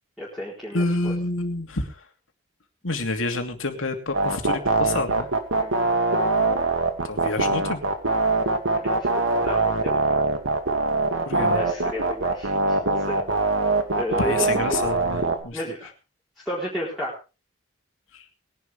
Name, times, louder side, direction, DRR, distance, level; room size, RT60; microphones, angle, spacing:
voice 1, 0.2-1.1 5.6-5.9 8.8-10.3 11.5-13.3 14.0-14.6 15.5-15.9 16.4-17.1, equal, ahead, -6 dB, 4.3 m, -33 dB
voice 2, 0.7-2.1 2.8-5.3 7.0-7.8 11.3-11.6 14.2-15.6 18.1-18.3, left 2 dB, 80° left, 5 dB, 2.8 m, -28 dB
sound 1, 4.1-15.4, right 3 dB, 85° right, 2.4 m, -22 dB
21.5 x 11.0 x 3.5 m, 0.31 s
head